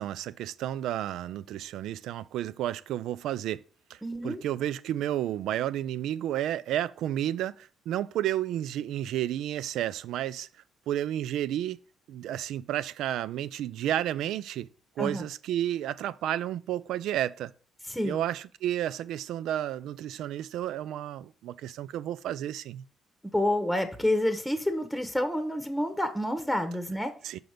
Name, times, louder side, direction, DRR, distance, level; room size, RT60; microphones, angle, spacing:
voice 1, 0.0-3.6 3.9-10.5 10.9-11.8 12.1-14.7 15.0-17.5 18.0-22.8 27.2-27.4, right 12 dB, 85° right, 0.4 m, -31 dB
voice 2, 4.0-4.4 15.0-15.3 17.9-18.2 23.2-27.1, left 1 dB, ahead, 1.0 m, -28 dB
6.0 x 5.3 x 5.0 m
cardioid pair, 90°, 0 cm